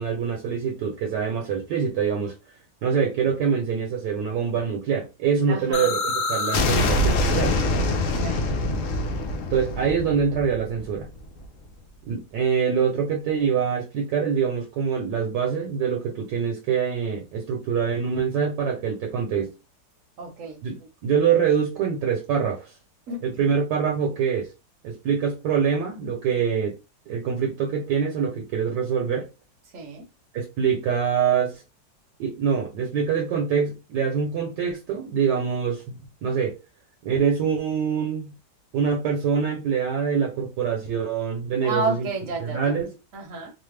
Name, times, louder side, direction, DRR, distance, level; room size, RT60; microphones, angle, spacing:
voice 1, 0.0-2.3 2.8-7.6 9.5-11.1 12.1-19.5 20.6-22.7 23.2-24.5 24.8-26.7 27.1-29.3 30.3-31.6 32.2-36.6 37.0-38.3 38.7-42.1 42.4-42.9, right 7 dB, 75° right, 1.2 m, -25 dB
voice 2, 5.5-5.9 8.1-8.5 20.2-20.6 23.1-23.5 29.7-30.0 41.6-42.7 43.1-43.5, right 3 dB, 55° right, 0.9 m, -31 dB
sound 1, 5.7-11.5, left 2 dB, 90° left, 0.7 m, -25 dB
3.2 x 2.1 x 3.2 m
omnidirectional pair, 1.9 m